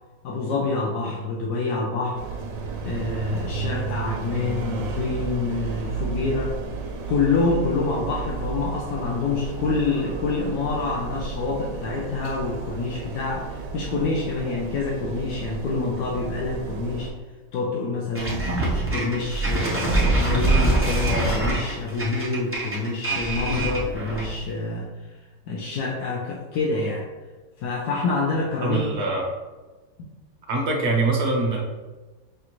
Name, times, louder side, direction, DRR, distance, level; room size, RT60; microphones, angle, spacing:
voice 1, 0.2-2.2 2.8-6.5 7.1-17.1 17.5-24.9 25.5-27.0 27.6-29.1, left 3 dB, 75° left, -3 dB, 1.2 m, -27 dB
sound 1, 2.1-17.1, right 5 dB, 85° right, 1.3 m, -33 dB
sound 2, 18.1-24.4, right 2 dB, 15° right, 0.4 m, -24 dB
voice 2, 28.6-29.2 30.5-31.6, right 3 dB, 50° right, -1 dB, 1.0 m, -23 dB
5.9 x 2.5 x 2.9 m, 1.2 s
omnidirectional pair, 1.8 m